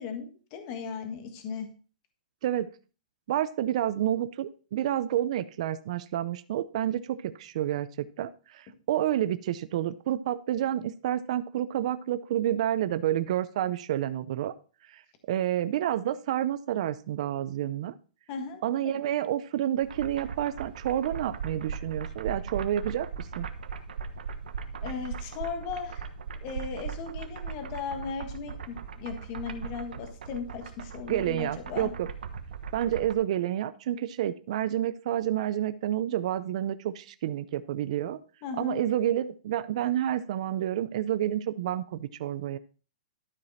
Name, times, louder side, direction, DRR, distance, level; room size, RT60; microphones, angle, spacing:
voice 1, 0.0-1.7 18.3-19.0 24.8-26.0 26.4-31.9 38.4-38.8, left 6 dB, 30° left, 6 dB, 1.5 m, -37 dB
voice 2, 3.3-14.5 14.9-15.0 15.3-17.9 18.6-23.5 31.1-32.1 32.7-38.2 38.6-42.6, right 11 dB, 50° right, 12 dB, 0.5 m, -29 dB
sound 1, 19.8-33.2, right 5 dB, 85° right, 1.1 m, -39 dB
12.5 x 4.9 x 4.1 m, 0.37 s
hypercardioid pair, 165°, 5 cm